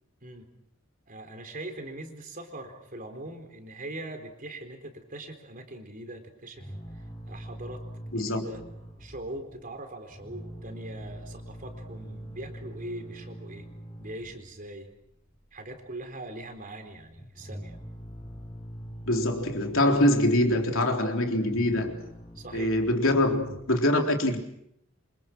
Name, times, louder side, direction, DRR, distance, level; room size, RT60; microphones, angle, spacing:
voice 1, 1.1-8.6 9.0-13.7 14.0-14.9 15.5-17.8 22.3-22.7, right 1 dB, 40° right, 6 dB, 4.1 m, -41 dB
sound 1, 6.6-9.7 10.1-14.7 15.0-16.1 16.3-16.5 16.8-20.9 21.3-23.6, equal, 25° left, 5.3 m, -43 dB
voice 2, 8.1-8.6 19.1-22.0 22.5-24.4, left 1 dB, 65° left, 3 dB, 3.8 m, -24 dB
27.5 x 26.5 x 6.2 m, 0.76 s
head